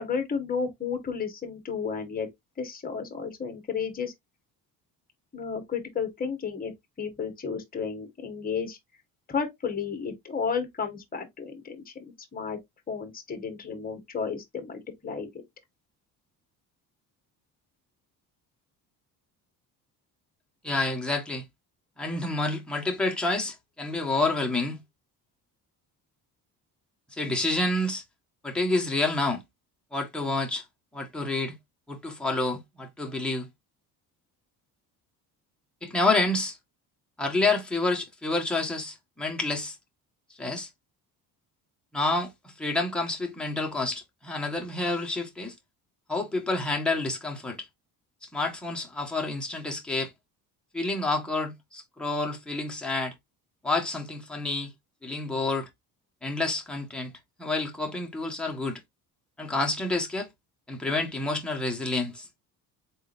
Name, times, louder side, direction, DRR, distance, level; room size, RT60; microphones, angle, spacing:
voice 1, 0.0-2.3 2.6-4.1 5.3-6.7 7.0-8.8 9.3-12.0 12.3-12.6 12.9-15.3, left 6 dB, 25° left, 1.5 m, -32 dB
voice 2, 20.6-21.4 22.0-24.8 27.1-28.0 28.4-29.4 29.9-30.6 30.9-31.6 31.9-33.5 35.8-36.6 37.2-39.7 40.4-40.7 41.9-45.5 46.1-47.7 48.2-50.1 50.7-53.1 53.6-54.7 55.0-55.7 56.2-57.1 57.4-58.8 59.4-60.3 60.7-62.3, left 2 dB, ahead, 1.3 m, -28 dB
4.0 x 3.7 x 2.5 m
cardioid pair, 115°, 38 cm